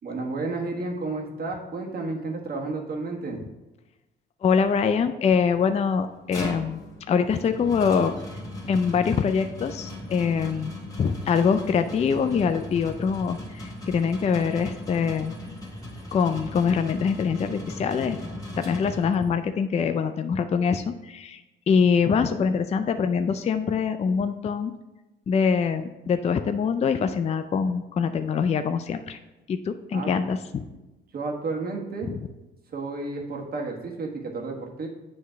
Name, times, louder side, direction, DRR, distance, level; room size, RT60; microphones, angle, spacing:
voice 1, 0.0-3.4 29.9-30.1 31.1-32.1 32.7-34.9, right 3 dB, 50° right, 1 dB, 1.3 m, -31 dB
voice 2, 4.4-8.1 8.7-10.7 11.0-15.4 16.1-18.2 18.6-21.4 21.7-24.7 25.3-29.2 29.5-30.7 32.0-32.2, left 6 dB, 35° left, 9 dB, 0.4 m, -24 dB
sound 1, 6.0-19.5, left 1 dB, 15° left, 1.7 m, -38 dB
7.9 x 3.2 x 4.6 m, 1.0 s
cardioid pair, 90°, 20 cm